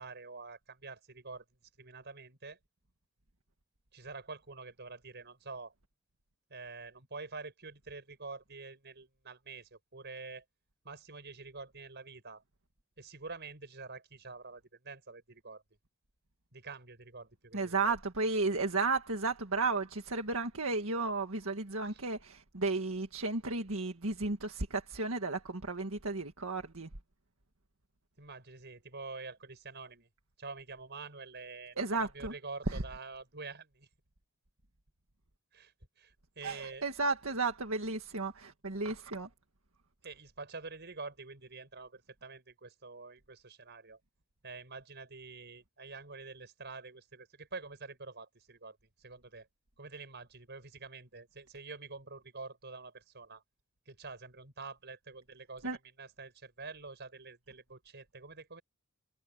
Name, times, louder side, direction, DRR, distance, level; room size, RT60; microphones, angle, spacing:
voice 1, 0.0-1.4 1.8-2.6 3.9-5.7 6.5-10.4 10.8-12.4 13.0-15.6 16.5-17.9 21.9-22.0 28.2-30.1 30.4-33.9 35.5-36.9 40.0-44.0 44.4-49.5 49.8-53.4 53.9-58.6, right 4 dB, 55° right, 6.1 m, -47 dB
voice 2, 17.5-26.9 31.8-32.3 32.7-32.8 36.4-39.3 55.6-55.8, right 3 dB, 75° right, 1.9 m, -33 dB
head